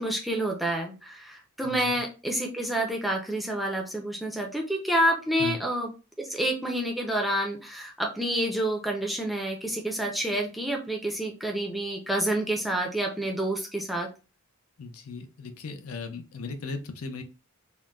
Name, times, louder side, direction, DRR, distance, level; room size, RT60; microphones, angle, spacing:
voice 1, 0.0-5.9 6.2-14.1, right 1 dB, ahead, 0 dB, 0.4 m, -28 dB
voice 2, 1.6-2.0 5.4-5.6 14.8-17.2, left 4 dB, 80° left, 7 dB, 0.5 m, -37 dB
3.7 x 2.1 x 2.3 m, 0.31 s
head